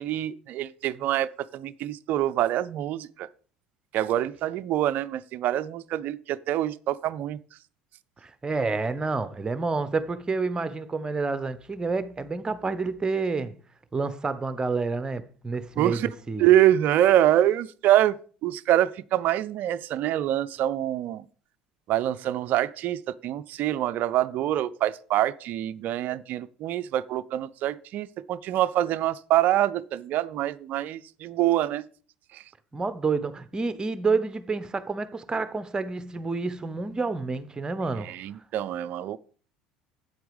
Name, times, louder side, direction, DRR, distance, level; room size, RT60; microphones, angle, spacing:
voice 1, 0.0-3.3 3.9-7.4 15.8-16.1 16.4-18.2 18.4-21.3 21.9-31.8 32.3-32.4 38.0-39.2, right 12 dB, 50° right, 0.5 m, -25 dB
voice 2, 8.2-13.6 13.9-16.5 32.7-38.1, right 4 dB, 20° right, 0.9 m, -29 dB
8.6 x 7.8 x 5.1 m
figure-of-eight pair, 65°, 4 cm